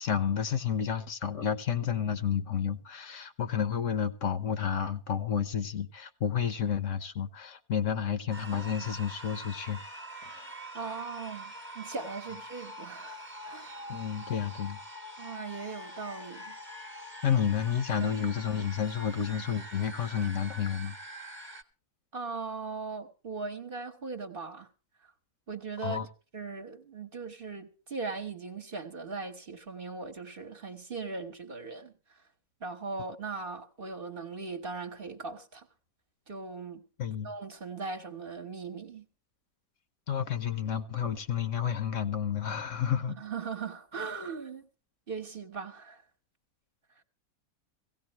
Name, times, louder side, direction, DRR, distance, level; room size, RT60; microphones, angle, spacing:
voice 1, 0.0-9.8 10.3-10.5 13.9-14.8 17.2-21.0 25.8-26.1 37.0-37.3 40.1-43.2, left 8 dB, 60° left, 1.2 m, -30 dB
sound 1, 8.3-21.6, equal, 10° right, 1.1 m, -44 dB
voice 2, 10.7-14.0 15.2-16.6 18.0-18.1 22.1-24.7 25.5-26.0 26.3-32.2 32.6-35.7 36.3-36.8 37.2-39.0 43.2-44.7 45.1-46.0, right 4 dB, 40° right, 1.3 m, -39 dB
17.0 x 16.5 x 3.0 m
omnidirectional pair, 1.5 m